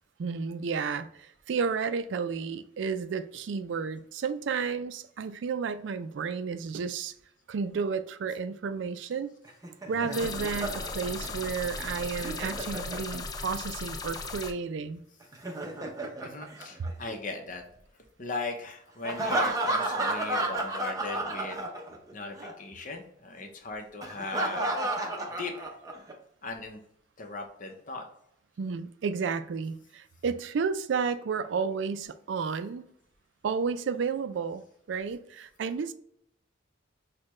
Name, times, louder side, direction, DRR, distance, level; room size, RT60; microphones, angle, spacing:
voice 1, 0.2-7.1 7.5-9.3 9.9-15.0 28.6-32.8 33.4-35.9, right 5 dB, 70° right, 0.4 m, -32 dB
Laughter, 9.5-13.5 15.2-17.3 19.0-22.1 22.4-22.5 24.0-26.1, right 2 dB, 20° right, 0.6 m, -32 dB
sound 1, 10.1-14.5, left 4 dB, 20° left, 0.3 m, -37 dB
voice 2, 16.2-17.6 18.2-21.7 22.1-24.7 25.4-25.8 26.4-26.8 27.2-28.0, left 3 dB, 45° left, 0.8 m, -38 dB
6.4 x 2.2 x 3.0 m
head